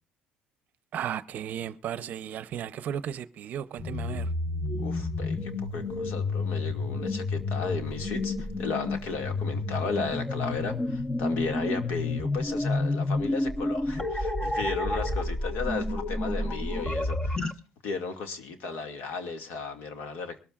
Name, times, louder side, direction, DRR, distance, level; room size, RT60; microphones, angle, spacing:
voice 1, 0.9-4.3, right 9 dB, 55° right, 0.7 m, -35 dB
sound 1, 3.8-17.5, left 2 dB, 20° left, 0.9 m, -30 dB
voice 2, 4.8-17.5 17.8-20.4, left 4 dB, 75° left, 2.1 m, -35 dB
22.5 x 13.0 x 2.5 m
cardioid pair, 125°, 3 cm